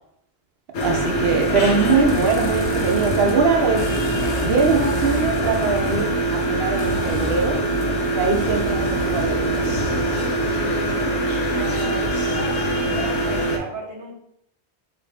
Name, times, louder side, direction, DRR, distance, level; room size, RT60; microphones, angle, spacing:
sound 1, 0.7-13.6, right 1 dB, 85° left, 0.9 m, -23 dB
voice 1, 0.8-3.9 4.4-7.6 8.1-9.7, right 4 dB, 65° right, 3 dB, 0.8 m, -22 dB
sound 2, 2.0-3.4 3.8-6.1 6.8-10.4, equal, 15° left, 0.5 m, -32 dB
voice 2, 10.6-12.2 12.5-14.1, right 2 dB, 90° right, 0 dB, 1.1 m, -36 dB
4.1 x 2.5 x 3.2 m, 0.74 s
omnidirectional pair, 1.1 m